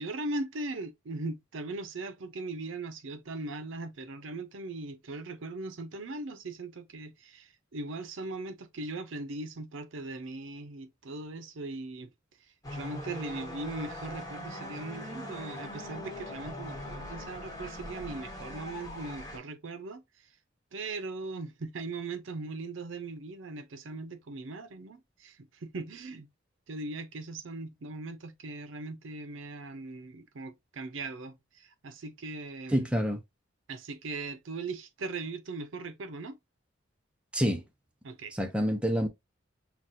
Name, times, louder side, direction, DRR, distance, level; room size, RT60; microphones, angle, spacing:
voice 1, 0.0-12.1 12.7-20.0 20.7-26.3 26.7-32.9 33.7-36.4 38.0-38.4, right 2 dB, 75° right, 0.6 m, -39 dB
sound 1, 12.6-19.4, left 1 dB, 20° left, 1.1 m, -41 dB
voice 2, 32.7-33.2 37.3-37.6 38.4-39.1, equal, 5° right, 0.5 m, -27 dB
5.8 x 2.2 x 2.5 m
head